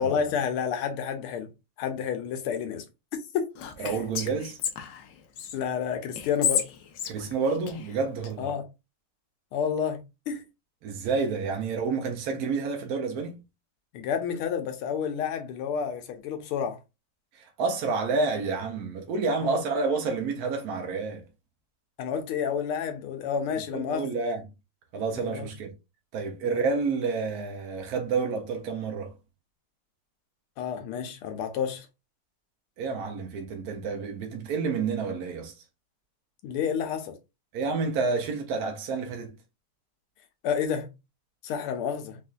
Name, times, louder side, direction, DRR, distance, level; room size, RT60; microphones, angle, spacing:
voice 1, 0.0-1.5 1.8-2.8 3.3-3.5 3.8-3.9 5.5-6.6 8.4-8.7 9.5-10.4 13.9-16.8 19.4-19.6 22.0-24.1 25.2-25.5 26.4-26.6 30.6-31.9 36.4-37.2 40.4-40.9 41.4-42.2, left 7 dB, 90° left, 1.6 m, -30 dB
Whispering, 3.6-5.6 6.2-8.3, left 9 dB, 70° left, 1.1 m, -32 dB
voice 2, 3.8-4.6 7.1-8.5 10.8-13.4 17.3-21.3 23.7-24.4 24.9-25.7 26.1-29.1 32.8-35.6 37.5-39.3, right 4 dB, 75° right, 0.8 m, -29 dB
4.2 x 2.4 x 2.3 m
omnidirectional pair, 2.4 m